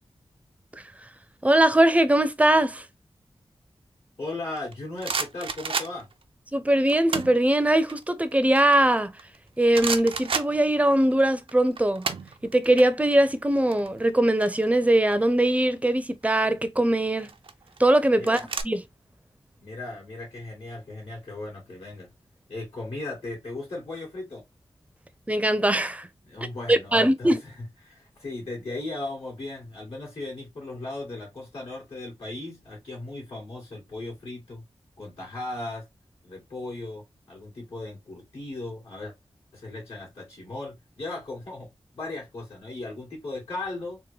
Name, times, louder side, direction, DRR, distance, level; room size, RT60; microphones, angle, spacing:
voice 1, 1.4-2.9 6.5-9.1 9.6-12.1 12.4-17.3 17.8-18.4 18.6-18.8 25.3-26.1 26.7-27.4, right 1 dB, 15° right, 0.5 m, -21 dB
voice 2, 4.2-6.1 18.1-18.4 19.6-22.1 22.5-24.5 26.2-34.6 35.0-35.9 36.2-39.1 39.5-41.7 41.9-44.0, left 2 dB, 80° left, 1.9 m, -37 dB
sound 1, 4.6-6.2 6.9-7.4 7.8-9.4 9.7-11.1 11.4-12.8 13.1-13.3 13.6-15.1 16.1-16.5 17.2-18.6, right 5 dB, 60° right, 0.5 m, -32 dB
3.6 x 2.1 x 3.2 m
cardioid pair, 60°, 10 cm